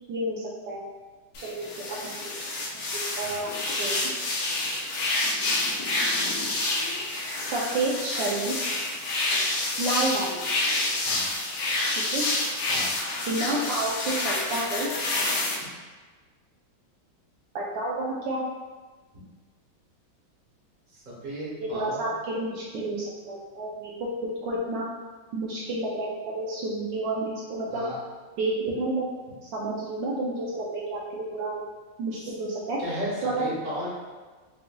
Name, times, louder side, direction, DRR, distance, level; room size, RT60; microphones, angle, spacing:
voice 1, 0.1-0.8 1.4-2.1 3.1-3.5 3.8-4.1 7.3-8.5 9.8-10.4 12.1-12.2 13.3-14.9 17.5-18.4 21.6-23.0 23.3-23.9 24.4-24.9 25.3-27.8 28.4-29.0 29.4-31.6 32.0-32.8 33.2-33.3, right 2 dB, 75° right, -5 dB, 1.2 m, -30 dB
sound 1, 1.3-15.5, left 2 dB, 65° left, 0.9 m, -28 dB
voice 2, 20.9-22.1 27.7-28.0 32.1-32.3 32.8-33.9, equal, 30° right, -7 dB, 1.1 m, -35 dB
5.7 x 2.6 x 2.2 m, 1.4 s
omnidirectional pair, 2.2 m